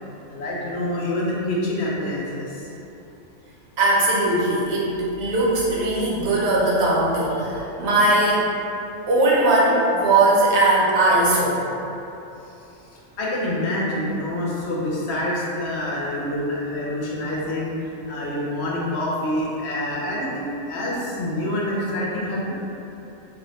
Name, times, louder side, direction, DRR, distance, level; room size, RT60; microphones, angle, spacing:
voice 1, 0.3-2.6 13.2-22.6, left 1 dB, 65° left, -5 dB, 0.8 m, -26 dB
voice 2, 3.8-8.4 9.1-11.6, right 2 dB, 65° right, -5 dB, 0.9 m, -19 dB
2.5 x 2.1 x 3.8 m, 2.9 s
omnidirectional pair, 1.4 m